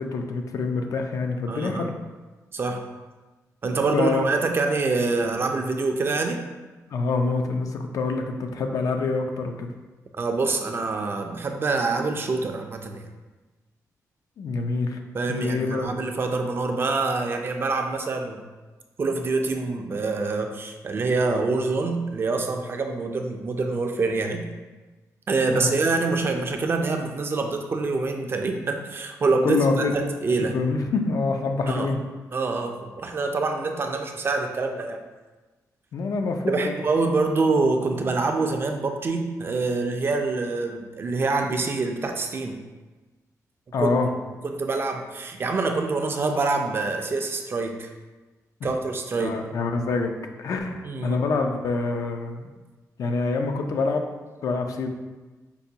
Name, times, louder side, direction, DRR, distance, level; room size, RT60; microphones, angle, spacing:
voice 1, 0.0-1.9 3.9-4.2 6.9-9.7 14.4-15.0 15.3-15.9 25.5-25.7 29.4-30.1 30.4-32.0 35.9-36.8 43.7-44.1 48.6-48.7 49.2-50.1 50.4-52.5 53.0-54.0 54.4-54.9, left 4 dB, 65° left, 4 dB, 0.4 m, -26 dB
voice 2, 1.5-1.9 2.5-2.8 3.6-6.4 10.2-13.1 15.1-18.4 19.0-24.5 25.3-30.6 31.7-31.9 32.3-35.0 36.5-42.6 43.8-44.0 44.4-47.9 48.6-49.4 50.8-51.2, right 3 dB, 40° right, 4 dB, 0.4 m, -26 dB
5.3 x 2.2 x 2.7 m, 1.2 s
cardioid pair, 115°, 6 cm